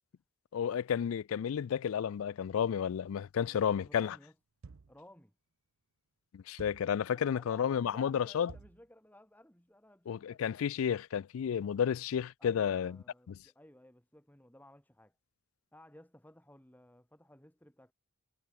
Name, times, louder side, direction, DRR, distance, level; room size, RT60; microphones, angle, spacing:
voice 1, 0.5-4.1 6.3-8.5 10.1-13.0 13.3-13.4, left 8 dB, 75° left, 0.3 m, -32 dB
voice 2, 3.4-4.4 4.9-5.3 7.1-10.4 12.4-15.2 15.7-17.9, left 1 dB, 10° left, 2.2 m, -57 dB
sound 1, 4.6-5.1 6.6-7.0 8.5-8.9, right 4 dB, 70° right, 0.6 m, -51 dB
head